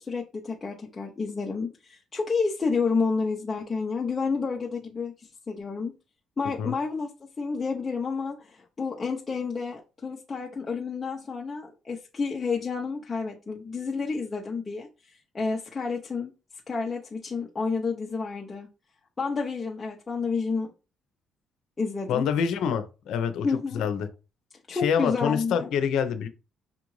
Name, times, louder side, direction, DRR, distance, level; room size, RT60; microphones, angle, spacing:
voice 1, 0.0-5.9 6.4-7.1 7.4-16.3 16.7-18.7 19.2-20.7 21.8-22.3 23.4-23.8 24.7-25.7, left 4 dB, 25° left, 0.7 m, -30 dB
voice 2, 22.1-23.5 23.7-24.1 24.7-26.3, left 7 dB, 75° left, 0.6 m, -26 dB
5.6 x 2.5 x 3.1 m
cardioid pair, 105°, 0 cm